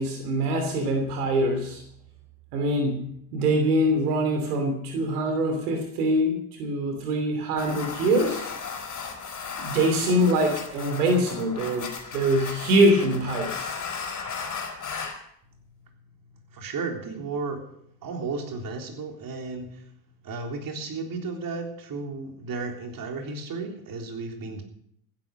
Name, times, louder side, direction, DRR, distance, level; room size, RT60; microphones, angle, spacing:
voice 1, 0.0-1.8 2.5-8.5 9.6-13.7, right 1 dB, 80° right, 5 dB, 3.0 m, -24 dB
sound 1, 7.6-15.2, left 5 dB, 40° left, 4.5 m, -35 dB
voice 2, 16.5-17.6 18.0-19.8 20.2-24.6, right 4 dB, 45° right, 3 dB, 3.6 m, -33 dB
15.5 x 10.5 x 6.5 m, 0.70 s
hypercardioid pair, 65°, 45 cm